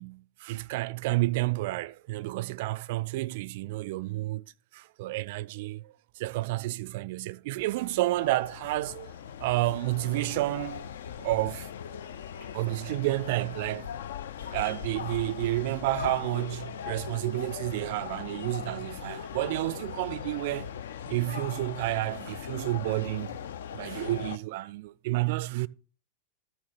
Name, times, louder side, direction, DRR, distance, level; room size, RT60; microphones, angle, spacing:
voice 1, 0.0-4.4 4.7-9.1 9.4-10.9 11.2-11.7 12.5-13.9 14.5-20.7 21.1-23.4 23.7-25.7, right 18 dB, 50° right, 0.3 m, -30 dB
sound 1, 7.6-24.4, left 8 dB, 60° left, 0.4 m, -40 dB
sound 2, 16.6-16.7 16.9-18.0 18.3-18.6 18.9-19.0 19.2-19.3 19.7-19.8 20.4-20.5 21.2-21.3 22.0-22.1 22.8-22.9, right 1 dB, 80° left, 3.4 m, -59 dB
14.0 x 6.0 x 3.1 m
figure-of-eight pair, 90°, 0 cm